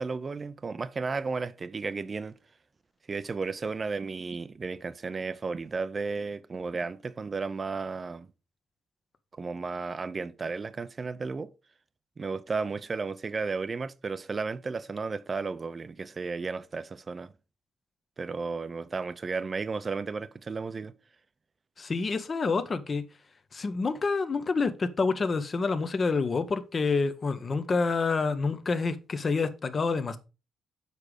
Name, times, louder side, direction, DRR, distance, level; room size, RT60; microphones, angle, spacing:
voice 1, 0.0-2.3 3.1-8.3 9.3-11.5 12.2-17.3 18.2-20.9, right 4 dB, 35° right, 0.5 m, -33 dB
voice 2, 21.8-23.0 23.5-30.2, left 4 dB, 35° left, 0.8 m, -28 dB
6.7 x 4.9 x 4.8 m
cardioid pair, 90°, 0 cm